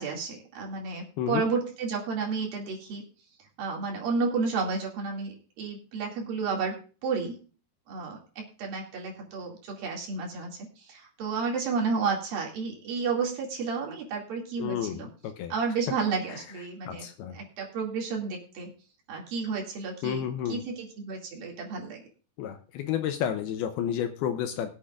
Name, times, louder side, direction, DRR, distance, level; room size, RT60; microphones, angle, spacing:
voice 1, 0.0-3.0 3.6-6.8 7.0-7.4 7.9-15.1 15.5-17.1 17.3-18.7 19.1-20.2 20.5-22.0, right 4 dB, 60° right, -1 dB, 4.0 m, -31 dB
voice 2, 14.6-15.5 16.3-16.4 16.9-17.4 20.0-20.6 22.4-24.7, left 9 dB, 80° left, 7 dB, 2.5 m, -31 dB
21.5 x 8.3 x 2.5 m, 0.36 s
omnidirectional pair, 4.8 m